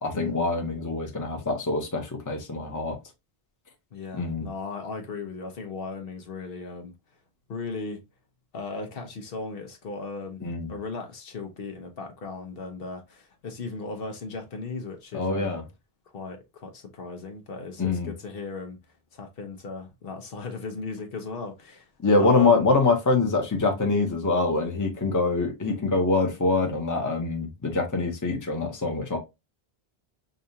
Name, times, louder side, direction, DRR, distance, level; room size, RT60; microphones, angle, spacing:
voice 1, 0.0-3.0 4.1-4.5 10.4-10.7 15.1-15.6 17.8-18.1 22.0-29.2, left 3 dB, 20° left, 0.8 m, -24 dB
voice 2, 3.9-6.9 7.5-8.0 8.5-10.4 10.7-15.6 16.1-18.8 19.1-21.9 22.2-22.7, left 3 dB, 65° left, 1.0 m, -36 dB
5.2 x 2.4 x 2.7 m
omnidirectional pair, 1.0 m